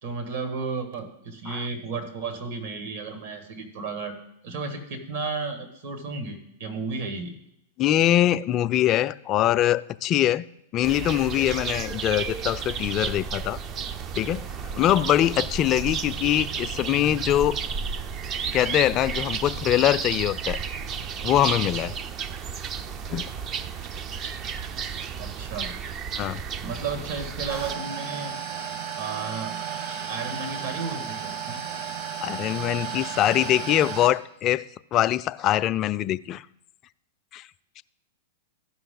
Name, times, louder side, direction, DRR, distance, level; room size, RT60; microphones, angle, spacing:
voice 1, 0.0-4.2 4.4-7.3 25.2-25.7 26.6-28.4 29.0-29.5 30.1-31.6, right 4 dB, 65° right, 2.1 m, -33 dB
voice 2, 7.8-10.4 10.7-13.6 14.2-14.5 14.8-17.6 18.5-20.6 21.2-22.0 23.1-23.2 26.2-26.4 32.2-34.7 34.9-36.4 37.3-37.4 37.8-37.9, left 12 dB, 35° left, 0.3 m, -23 dB
sound 1, 10.8-27.7, right 6 dB, 35° right, 0.5 m, -32 dB
sound 2, 27.5-34.1, right 8 dB, 50° right, 1.5 m, -33 dB
15.0 x 5.9 x 3.9 m
hypercardioid pair, 120°, 0 cm